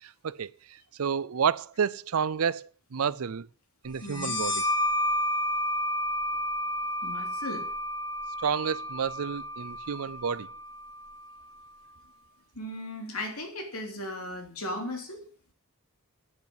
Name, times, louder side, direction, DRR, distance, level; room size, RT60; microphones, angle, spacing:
voice 1, 0.0-3.5 3.8-4.6 8.4-10.5, right 7 dB, 75° right, 0.5 m, -30 dB
voice 2, 4.0-4.4 7.0-7.7 12.5-15.2, left 1 dB, 80° left, 3.3 m, -36 dB
sound 1, 4.1-11.4, equal, 20° left, 2.0 m, -31 dB
9.6 x 9.5 x 7.5 m
head